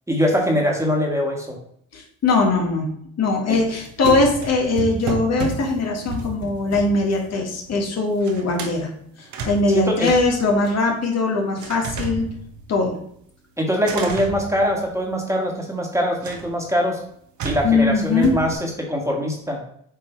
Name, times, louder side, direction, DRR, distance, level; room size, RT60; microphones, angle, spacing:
voice 1, 0.1-1.6 3.5-3.6 9.7-10.1 13.6-17.0 17.4-19.6, equal, 10° right, 0 dB, 1.6 m, -22 dB
voice 2, 1.9-2.9 3.2-8.9 9.4-12.3 12.7-13.0 17.6-18.3, left 3 dB, 55° left, 0 dB, 1.6 m, -20 dB
sound 1, 3.5-7.9 8.2-8.8 9.2-11.1 11.6-13.1 13.8-15.3 16.2-16.7 17.4-18.6, right 4 dB, 70° right, 1.1 m, -32 dB
8.0 x 3.0 x 4.5 m, 0.68 s
cardioid pair, 90°, 30 cm